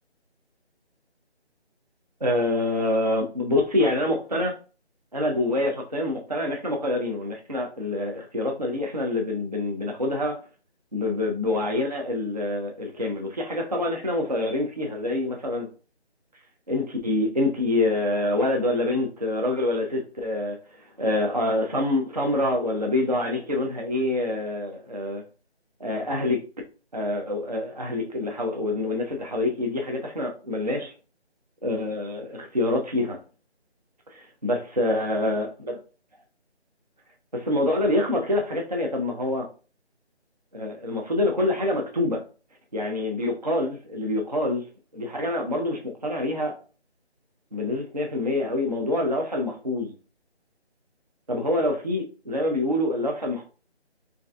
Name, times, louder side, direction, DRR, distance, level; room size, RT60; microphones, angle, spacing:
voice 1, 2.2-4.5 5.1-10.4 10.9-15.7 16.7-25.2 25.8-26.4 26.9-30.9 31.6-33.2 34.1-35.8 37.3-39.5 40.5-42.2 42.7-44.7 44.9-46.6 47.5-49.9 51.3-53.4, left 1 dB, 40° right, 0.4 m, -26 dB
4.6 x 2.5 x 2.2 m
figure-of-eight pair, 170°, 33 cm